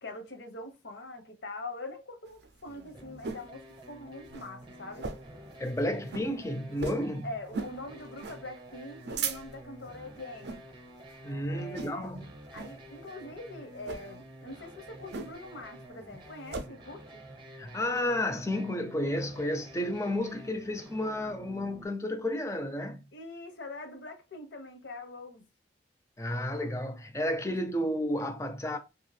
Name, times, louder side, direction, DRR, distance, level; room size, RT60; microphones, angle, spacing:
voice 1, 0.0-5.1 7.2-10.6 11.4-12.1 12.5-17.2 23.1-25.5 27.5-27.6, left 2 dB, 75° left, 0.7 m, -43 dB
sound 1, 2.3-3.5 3.9-4.0 4.2-4.5 4.9-5.4 5.7-5.8 6.1-6.3 6.8-7.1 7.5-7.8 8.2-8.4 8.8-9.7 10.3-10.6 11.1-11.3 11.7-12.1 12.5-12.8 13.8-14.1 15.1-15.6 15.9-16.7, right 5 dB, 65° right, 0.4 m, -37 dB
sound 2, 2.7-21.9, right 1 dB, 25° right, 0.6 m, -50 dB
voice 2, 5.6-7.3 11.2-12.3 17.5-23.0 26.2-28.8, left 1 dB, 15° left, 0.4 m, -32 dB
2.7 x 2.4 x 3.2 m
head